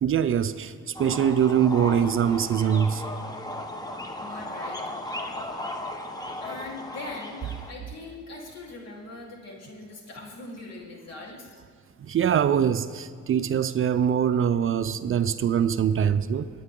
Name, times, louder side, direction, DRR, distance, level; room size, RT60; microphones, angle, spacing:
voice 1, 0.0-3.0 12.0-16.5, right 8 dB, 45° right, 0.5 m, -23 dB
sound 1, 1.0-7.7, left 1 dB, 15° left, 1.3 m, -36 dB
voice 2, 4.2-4.8 6.4-11.6, left 2 dB, 55° left, 3.7 m, -41 dB
24.0 x 9.3 x 3.8 m
cardioid pair, 90°, 30 cm